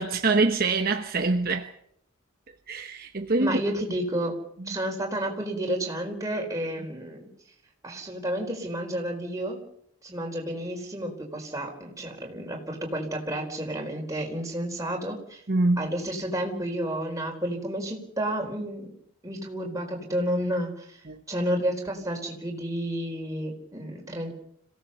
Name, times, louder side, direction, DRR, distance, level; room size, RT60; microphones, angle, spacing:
voice 1, 0.0-1.7 2.7-3.6 15.5-15.9 21.1-21.2, right 3 dB, 45° right, 1.1 m, -24 dB
voice 2, 3.4-4.3 4.7-7.3 7.8-9.6 10.0-15.4 15.8-19.0 19.2-21.0 21.3-24.3, right 1 dB, 15° right, 4.4 m, -31 dB
26.5 x 17.0 x 6.9 m
head